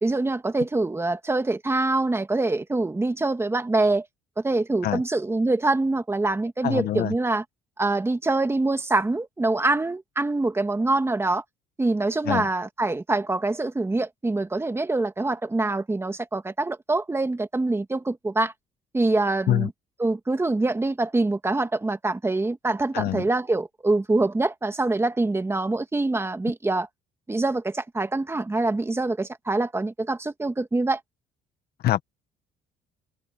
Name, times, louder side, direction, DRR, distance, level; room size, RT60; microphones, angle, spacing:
voice 1, 0.0-4.1 4.4-7.4 7.8-11.4 11.8-18.5 18.9-19.7 20.0-26.9 27.3-31.0, right 2 dB, 15° right, 1.9 m, -25 dB
voice 2, 6.6-7.1 12.3-12.4 19.5-19.7 22.9-23.2 31.8-32.0, left 13 dB, 65° left, 1.3 m, -24 dB
cardioid pair, 110°, 17 cm